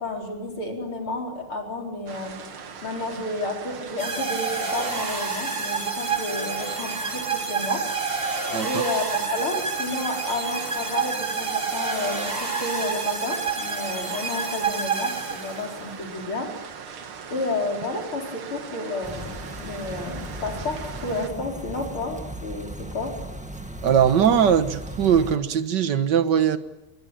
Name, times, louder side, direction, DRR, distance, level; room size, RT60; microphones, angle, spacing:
voice 1, 0.0-2.4 2.8-8.2 8.6-16.6 17.3-23.2, left 2 dB, 85° left, 5.3 m, -31 dB
sound 1, 2.1-21.3, right 6 dB, 90° right, 2.5 m, -40 dB
sound 2, 4.0-15.8, right 5 dB, 25° right, 2.9 m, -28 dB
sound 3, 19.0-25.4, right 1 dB, 5° right, 1.6 m, -37 dB
voice 2, 23.8-26.6, right 8 dB, 60° right, 1.8 m, -20 dB
25.0 x 22.0 x 8.9 m
omnidirectional pair, 2.3 m